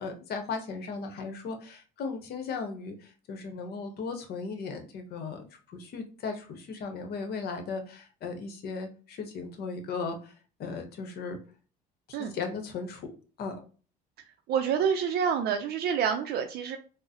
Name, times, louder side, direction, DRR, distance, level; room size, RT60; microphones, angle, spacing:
voice 1, 0.0-10.3 10.6-11.4 12.1-13.1 13.4-13.6, left 4 dB, 55° left, 6 dB, 0.8 m, -37 dB
voice 2, 14.5-16.8, right 7 dB, 55° right, 5 dB, 0.4 m, -27 dB
3.7 x 2.0 x 2.7 m, 0.38 s
supercardioid pair, 100°, 19 cm